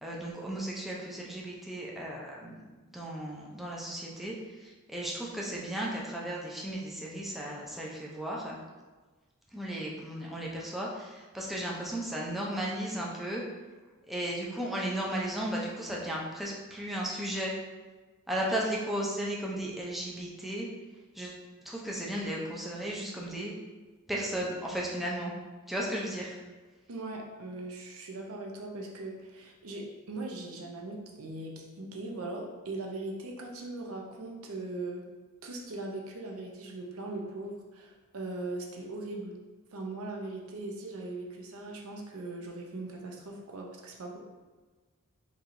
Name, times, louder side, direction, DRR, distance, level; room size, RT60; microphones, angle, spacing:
voice 1, 0.0-2.5 2.9-8.6 9.5-13.4 14.1-17.5 18.3-20.7 21.1-21.4 21.6-23.5 24.1-25.3 25.7-26.4, right 1 dB, ahead, -4 dB, 0.4 m, -35 dB
voice 2, 26.9-35.1 35.4-39.4 39.7-44.2, right 2 dB, 70° right, 0 dB, 0.6 m, -40 dB
4.6 x 2.8 x 2.5 m, 1.3 s
head